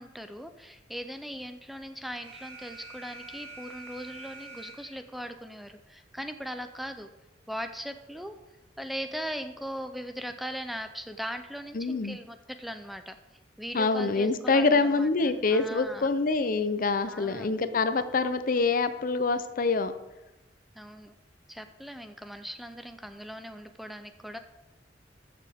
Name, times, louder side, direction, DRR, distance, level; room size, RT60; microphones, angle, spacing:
voice 1, 0.0-7.1 7.5-8.4 8.8-13.2 13.6-16.1 17.1-17.6 20.8-21.1 21.5-24.4, equal, ahead, 8 dB, 0.5 m, -39 dB
Alarm, 2.2-5.2, right 3 dB, 70° right, 2.8 m, -46 dB
voice 2, 11.7-12.2 13.7-19.9, left 3 dB, 50° left, 11 dB, 0.6 m, -25 dB
13.5 x 6.8 x 3.5 m, 1.0 s
head